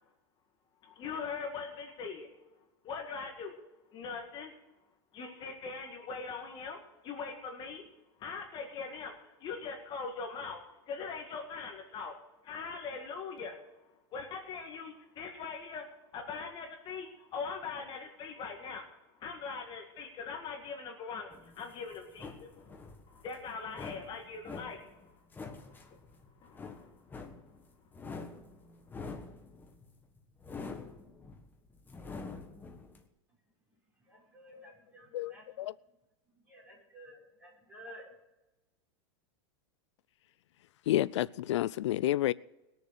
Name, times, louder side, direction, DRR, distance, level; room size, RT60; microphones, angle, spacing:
voice 1, 0.8-2.3 2.8-3.5 3.9-4.5 5.1-7.9 8.2-12.2 12.4-13.6 14.1-15.9 16.1-18.9 19.2-25.2 25.5-26.0 26.4-26.9, left 5 dB, 30° left, 1.9 m, -41 dB
sound 1, 21.3-33.0, left 4 dB, 15° left, 1.4 m, -46 dB
voice 2, 34.0-35.6 36.3-38.1, equal, 10° right, 6.2 m, -53 dB
voice 3, 35.1-35.7 40.9-42.3, left 14 dB, 85° left, 0.4 m, -30 dB
20.5 x 7.0 x 6.5 m
supercardioid pair, 135°, 15 cm